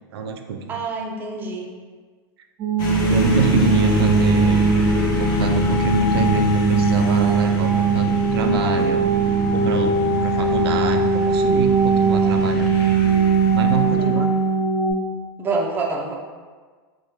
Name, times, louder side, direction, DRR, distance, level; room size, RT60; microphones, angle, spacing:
voice 1, 0.1-0.8 3.1-9.0 9.5-12.9 13.5-14.3, right 5 dB, 90° right, 5 dB, 0.4 m, -26 dB
voice 2, 0.7-1.7 14.0-14.1 15.4-16.2, right 3 dB, 15° right, -1 dB, 0.4 m, -26 dB
sound 1, 2.6-14.9, right 4 dB, 30° right, 1.0 m, -20 dB
sound 2, 2.8-14.5, equal, 35° left, 0.6 m, -25 dB
4.6 x 2.1 x 2.8 m, 1.5 s
supercardioid pair, 140°, 13 cm